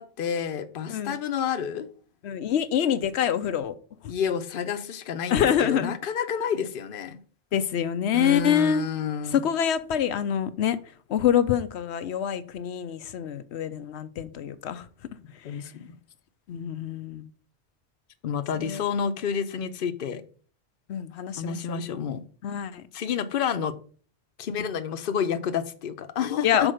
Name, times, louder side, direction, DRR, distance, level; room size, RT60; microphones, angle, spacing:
voice 1, 0.0-1.9 4.1-7.2 8.1-9.4 15.4-15.9 18.2-20.2 21.4-22.2 22.9-23.7 24.4-26.7, left 7 dB, 60° left, 0.8 m, -29 dB
voice 2, 2.2-3.7 5.3-5.9 7.5-8.9 9.3-10.8 11.1-14.9 15.3-15.7 16.5-17.3 18.5-18.8 20.9-21.8 22.4-22.9 26.4-26.7, left 9 dB, 90° left, 1.0 m, -26 dB
6.2 x 4.4 x 6.3 m
omnidirectional pair, 1.1 m